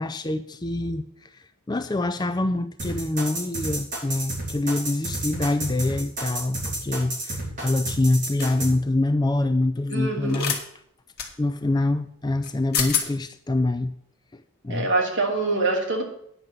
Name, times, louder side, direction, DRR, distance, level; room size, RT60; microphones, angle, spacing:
voice 1, 0.0-10.6 11.4-13.9 14.3-14.9, left 2 dB, 20° left, 10 dB, 0.4 m, -25 dB
sound 1, 2.8-8.7, right 2 dB, 35° right, 4.6 m, -30 dB
sound 2, 8.4-8.6 10.3-10.6 11.2-11.3 12.4-12.5 12.7-13.1, left 7 dB, 45° left, 1.8 m, -26 dB
voice 2, 9.9-10.5 14.7-16.0, right 2 dB, 55° right, 0 dB, 2.7 m, -24 dB
9.4 x 6.0 x 7.9 m, 0.68 s
head